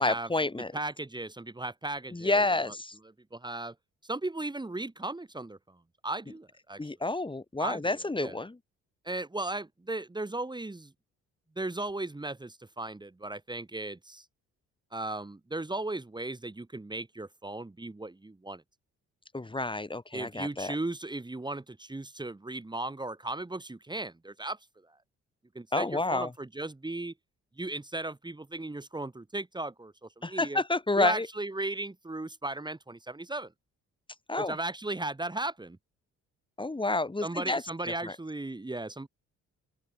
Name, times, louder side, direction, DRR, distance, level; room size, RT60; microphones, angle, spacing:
voice 1, 0.0-0.7 2.1-2.9 6.8-8.6 19.3-20.7 25.7-26.3 30.2-31.3 34.3-34.6 36.6-38.2, left 2 dB, 15° left, 3.0 m, -29 dB
voice 2, 0.7-2.4 3.3-3.7 4.0-5.6 6.0-6.8 7.6-8.3 9.0-10.9 11.6-14.2 14.9-18.6 20.1-24.6 25.5-27.1 27.6-30.6 31.0-33.5 34.4-35.8 37.2-39.1, right 2 dB, 15° right, 2.7 m, -36 dB
open air
cardioid pair, 90°, 30 cm